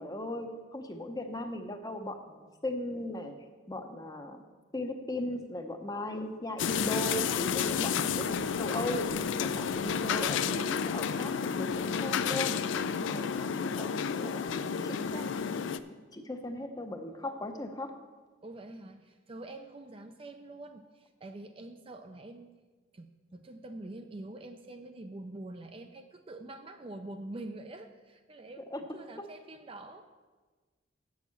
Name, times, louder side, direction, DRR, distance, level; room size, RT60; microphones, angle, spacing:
voice 1, 0.0-3.3 3.7-4.4 4.7-9.1 9.4-12.6 13.0-15.6 16.1-17.9 28.7-28.8, left 1 dB, 20° left, 6 dB, 0.7 m, -38 dB
sound 1, 6.6-15.8, left 6 dB, 65° left, 0.4 m, -31 dB
voice 2, 18.4-22.5 22.9-28.6 28.9-30.1, right 2 dB, 25° right, 6 dB, 0.4 m, -45 dB
7.8 x 6.3 x 7.0 m, 1.3 s
head